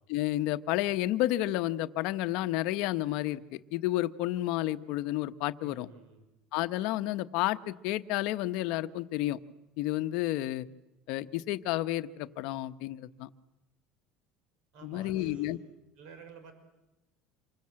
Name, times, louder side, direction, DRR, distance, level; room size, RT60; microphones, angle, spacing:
voice 1, 0.1-5.9 6.5-9.4 9.8-10.7 11.1-13.3 14.8-15.6, left 15 dB, 65° left, 11 dB, 1.0 m, -31 dB
voice 2, 5.6-6.3 14.7-15.6 16.0-16.5, right 5 dB, 60° right, 8 dB, 5.4 m, -50 dB
27.5 x 25.0 x 7.7 m, 0.98 s
cardioid pair, 140°, 0 cm